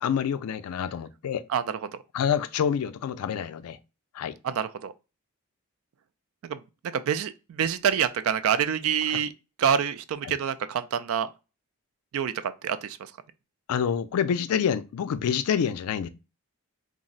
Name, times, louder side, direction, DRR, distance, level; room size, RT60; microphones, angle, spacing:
voice 1, 0.0-1.4 2.1-3.8 4.1-4.3 9.1-9.2 10.2-10.4 13.7-16.1, left 8 dB, 85° left, 0.3 m, -27 dB
voice 2, 4.4-4.9 6.5-6.6 6.9-9.3 9.6-11.3 12.1-13.0, right 8 dB, 65° right, 0.3 m, -26 dB
2.5 x 2.0 x 3.7 m
head